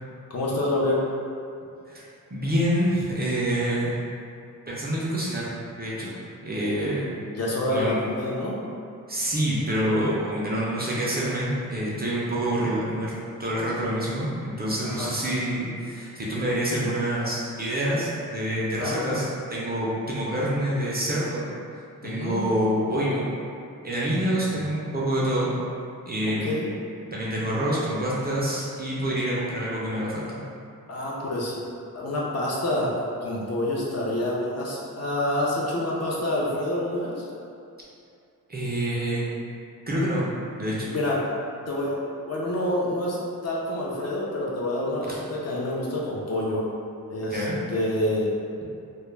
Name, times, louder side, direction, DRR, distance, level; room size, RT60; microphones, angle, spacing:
voice 1, 0.3-1.0 7.3-8.6 14.8-15.3 18.8-19.1 22.0-22.4 24.5-24.7 26.2-26.7 30.9-31.6 31.9-32.9 33.2-37.2 40.8-41.2 41.7-42.0 42.3-43.2 43.4-46.6 47.1-48.3, left 1 dB, 50° left, -5 dB, 0.5 m, -27 dB
voice 2, 2.3-4.0 4.7-5.5 5.8-6.2 6.4-7.1 7.7-8.0 9.1-13.1 13.4-19.3 19.5-21.5 22.0-23.2 23.8-25.5 26.1-26.6 27.1-30.3 38.5-39.2 39.9-40.2 40.6-40.9 45.0-45.2 47.3-47.6, right 1 dB, 30° right, -7 dB, 0.4 m, -26 dB
2.2 x 2.1 x 3.1 m, 2.5 s
wide cardioid pair, 135°, 34 cm